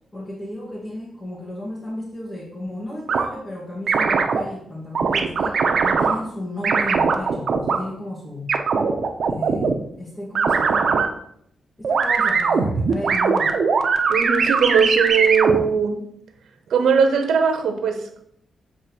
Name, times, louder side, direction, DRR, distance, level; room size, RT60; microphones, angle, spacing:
voice 1, 0.1-8.6 9.3-11.0 11.8-13.6, left 1 dB, 20° left, -6 dB, 1.8 m, -34 dB
sound 1, 3.1-3.3 3.9-4.4 5.0-6.2 6.6-7.8 8.5-9.7 10.4-11.1 11.8-15.6, right 5 dB, 55° right, 0.8 m, -20 dB
voice 2, 14.1-16.0 16.7-18.2, right 6 dB, 85° right, 5 dB, 0.9 m, -19 dB
7.1 x 3.5 x 6.1 m, 0.69 s
wide cardioid pair, 130°, 0 cm